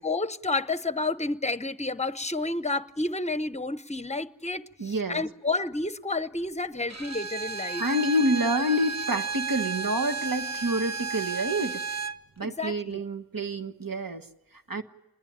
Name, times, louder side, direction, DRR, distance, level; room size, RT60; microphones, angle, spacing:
voice 1, 0.0-7.8 12.4-13.0, left 2 dB, 20° left, 0.8 m, -30 dB
voice 2, 4.8-5.2 7.8-11.9 12.4-14.3 14.7-14.8, equal, 70° right, 1.5 m, -28 dB
Bowed string instrument, 6.9-12.2, right 4 dB, 45° right, 1.1 m, -33 dB
26.5 x 21.0 x 8.9 m
wide cardioid pair, 45°, 35 cm